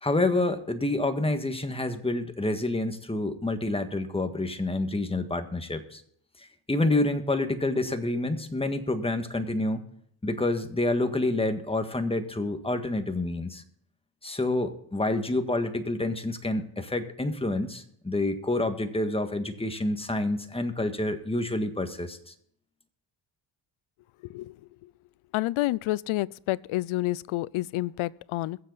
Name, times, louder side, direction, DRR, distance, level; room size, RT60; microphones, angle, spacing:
voice 1, 0.0-6.0 6.4-9.8 10.2-13.6 14.2-22.3, left 2 dB, 10° left, 1.6 m, -28 dB
voice 2, 25.3-28.6, left 17 dB, 80° left, 0.6 m, -29 dB
22.5 x 7.7 x 4.0 m
cardioid pair, 90°, 48 cm